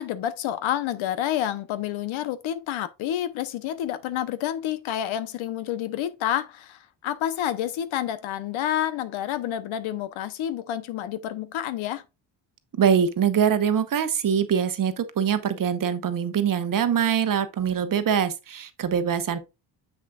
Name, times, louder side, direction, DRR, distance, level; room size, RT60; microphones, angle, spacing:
voice 1, 0.0-12.0, left 11 dB, 75° left, 0.9 m, -29 dB
voice 2, 12.7-19.4, right 8 dB, 45° right, 1.0 m, -23 dB
7.4 x 6.1 x 2.3 m
cardioid pair, 95°, 47 cm